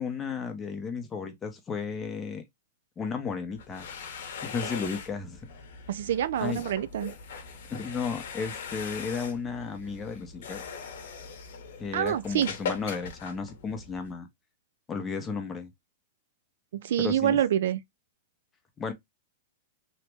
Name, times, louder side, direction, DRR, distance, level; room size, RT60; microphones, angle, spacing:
voice 1, 0.0-2.4 3.0-3.9 4.4-5.4 6.4-6.6 7.7-10.6 11.8-14.3 14.9-15.7 17.0-17.4 18.8-18.9, left 5 dB, 15° left, 0.6 m, -34 dB
sound 1, 3.5-14.1, left 6 dB, 65° left, 0.8 m, -40 dB
voice 2, 5.9-7.1 11.9-12.5 16.7-17.8, right 10 dB, 70° right, 0.3 m, -26 dB
2.9 x 2.1 x 3.3 m
supercardioid pair, 160°, 0 cm